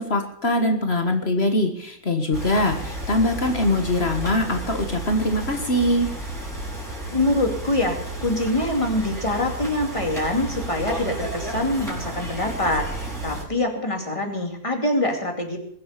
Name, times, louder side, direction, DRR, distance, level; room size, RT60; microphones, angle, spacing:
voice 1, 0.0-6.1, left 1 dB, 50° left, 5 dB, 1.8 m, -22 dB
sound 1, 2.3-13.4, right 2 dB, ahead, 5.8 m, -32 dB
voice 2, 7.1-15.6, left 1 dB, 20° left, 3 dB, 2.6 m, -24 dB
21.5 x 7.8 x 6.8 m, 0.71 s
omnidirectional pair, 1.4 m